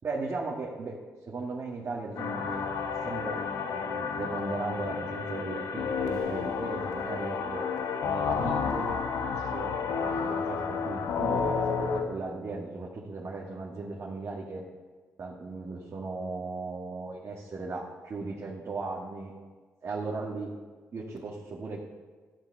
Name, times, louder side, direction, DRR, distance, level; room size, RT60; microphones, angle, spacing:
voice 1, 0.0-2.7 3.0-7.7 8.0-14.6 15.2-19.3 19.8-20.5 20.9-21.8, right 3 dB, 55° right, -4 dB, 2.0 m, -37 dB
sound 1, 2.2-12.0, left 6 dB, 90° left, 1.1 m, -31 dB
13.5 x 7.6 x 6.9 m, 1.4 s
cardioid pair, 70°, 6 cm